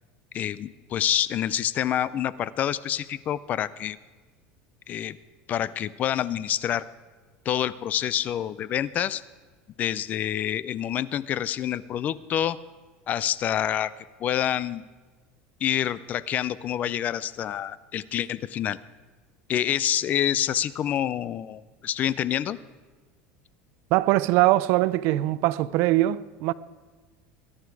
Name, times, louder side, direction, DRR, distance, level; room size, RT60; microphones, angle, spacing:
voice 1, 0.3-4.0 4.9-5.2 5.5-6.8 7.5-9.2 9.8-12.6 13.1-13.9 14.2-14.8 15.6-18.8 19.5-22.6, left 11 dB, 35° left, 0.4 m, -27 dB
voice 2, 23.9-26.5, right 16 dB, 60° right, 0.5 m, -22 dB
21.0 x 11.0 x 4.7 m
cardioid pair, 145°, 5 cm